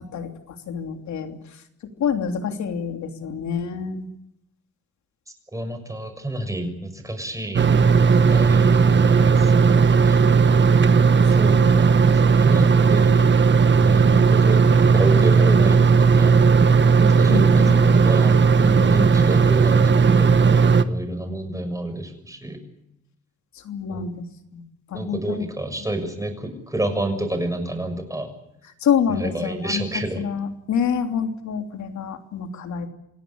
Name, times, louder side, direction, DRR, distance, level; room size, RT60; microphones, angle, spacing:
voice 1, 0.0-1.6 2.0-4.1 11.4-11.8 17.3-17.8 23.5-25.4 28.8-32.9, left 7 dB, 70° left, 6 dB, 3.1 m, -27 dB
voice 2, 5.5-7.7 8.3-10.5 11.3-13.3 13.8-16.4 17.0-22.6 23.9-24.1 24.9-28.3 29.1-30.2, right 1 dB, 10° right, 7 dB, 6.4 m, -29 dB
sound 1, 7.5-20.8, right 5 dB, 40° right, 1.4 m, -16 dB
27.5 x 17.5 x 8.8 m, 0.83 s
cardioid pair, 90°, 30 cm